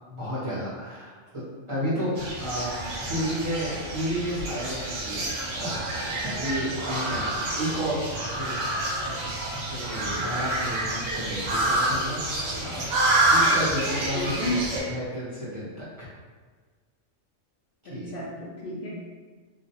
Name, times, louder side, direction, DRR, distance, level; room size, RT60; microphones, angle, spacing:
voice 1, 0.1-1.4 1.7-2.7 3.0-7.3 7.5-8.6 9.2-9.3 9.7-12.8 13.2-16.1 17.9-18.1, equal, 35° right, -11 dB, 0.6 m, -32 dB
sound 1, 2.2-14.8, right 1 dB, 65° right, 0.7 m, -28 dB
voice 2, 14.1-14.6 17.9-18.9, left 1 dB, 60° left, -8 dB, 0.6 m, -31 dB
2.3 x 2.0 x 2.7 m, 1.5 s
omnidirectional pair, 1.3 m